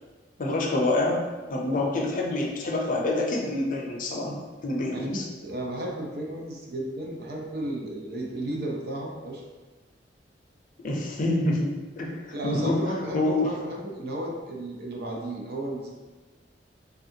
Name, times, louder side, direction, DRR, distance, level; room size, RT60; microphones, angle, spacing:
voice 1, 0.4-1.2 1.5-5.2 10.8-13.5, left 2 dB, 50° left, -1 dB, 0.5 m, -27 dB
voice 2, 4.9-9.4 12.3-15.9, right 1 dB, 60° right, -1 dB, 0.6 m, -33 dB
3.4 x 2.4 x 2.7 m, 1.2 s
head